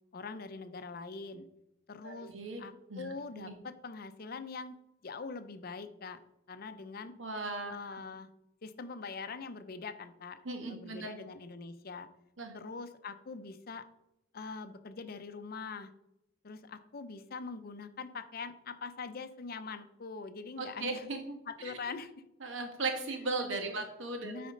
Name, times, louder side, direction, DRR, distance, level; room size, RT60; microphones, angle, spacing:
voice 1, 0.1-1.5 1.9-2.3 2.6-4.7 5.0-6.2 6.5-7.1 7.7-8.3 8.6-12.1 12.5-13.8 14.3-15.9 16.4-21.0 21.5-22.1 23.6-23.8 24.2-24.5, left 4 dB, 50° left, 11 dB, 0.6 m, -43 dB
voice 2, 2.0-2.6 2.9-3.5 7.2-7.7 10.4-11.1 12.4-12.5 20.6-21.2 21.6-21.8 22.4-24.5, right 3 dB, 90° right, 4 dB, 1.5 m, -37 dB
9.0 x 4.3 x 5.1 m, 0.84 s
head